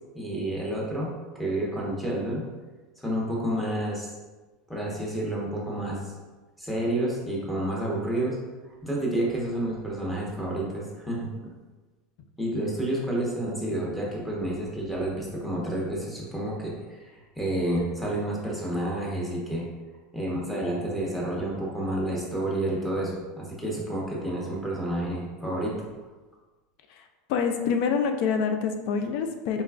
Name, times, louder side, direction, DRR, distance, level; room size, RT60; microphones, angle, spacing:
voice 1, 0.1-1.1 1.3-2.4 3.0-4.1 4.7-6.0 6.6-8.4 8.8-11.3 12.4-19.6 20.1-25.8, right 1 dB, 5° left, -4 dB, 0.9 m, -29 dB
voice 2, 27.3-29.6, left 6 dB, 65° left, 6 dB, 0.3 m, -26 dB
4.0 x 2.2 x 2.3 m, 1.2 s
supercardioid pair, 110°, 0 cm